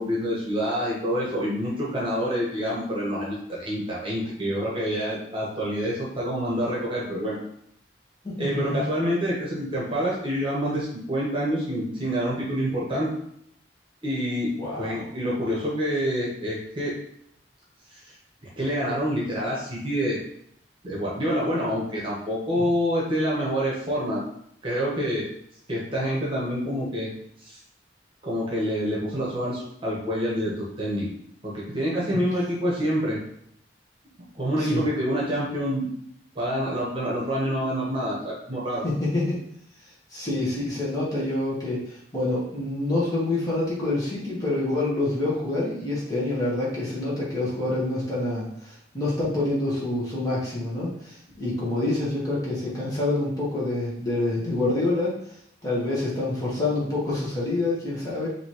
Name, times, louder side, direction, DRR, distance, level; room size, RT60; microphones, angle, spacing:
voice 1, 0.0-7.4 8.4-13.1 14.0-14.5 14.8-16.9 17.9-18.0 18.6-20.2 20.8-24.2 24.6-25.3 25.7-27.1 27.4-27.6 28.2-31.1 31.4-33.2 34.3-35.9 36.3-38.8, equal, 30° right, -5 dB, 1.2 m, -27 dB
voice 2, 8.2-8.8 14.6-15.1 22.5-22.6 34.6-34.8 38.8-39.4 40.1-55.1 55.6-58.3, left 2 dB, 20° left, -7 dB, 1.3 m, -27 dB
5.3 x 2.9 x 3.1 m, 0.71 s
head